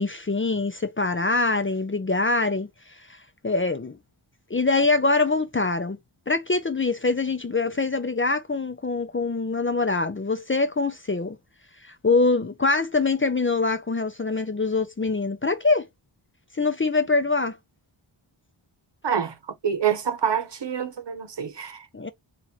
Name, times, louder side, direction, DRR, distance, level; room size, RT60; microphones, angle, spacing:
voice 1, 0.0-2.7 3.4-4.0 4.5-6.0 6.3-11.4 11.8-15.9 16.6-17.6 21.9-22.1, left 3 dB, 25° left, 0.5 m, -24 dB
voice 2, 19.0-19.4 19.6-21.9, right 8 dB, 60° right, 0.9 m, -26 dB
2.9 x 2.5 x 4.0 m
wide cardioid pair, 70°, 48 cm